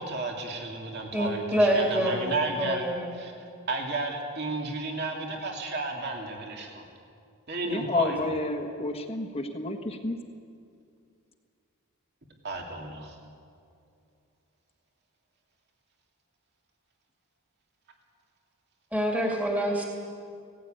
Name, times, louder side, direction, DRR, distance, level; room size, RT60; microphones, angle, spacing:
voice 1, 0.0-2.8 3.2-3.3 3.7-6.8 7.5-8.2 12.4-13.1, right 3 dB, 50° right, 1 dB, 2.5 m, -32 dB
voice 2, 1.1-2.3 2.6-3.2 18.9-19.9, equal, 5° right, -1 dB, 2.4 m, -26 dB
voice 3, 7.6-10.2, left 2 dB, 25° left, 4 dB, 1.3 m, -30 dB
18.5 x 17.0 x 9.0 m, 2.4 s
head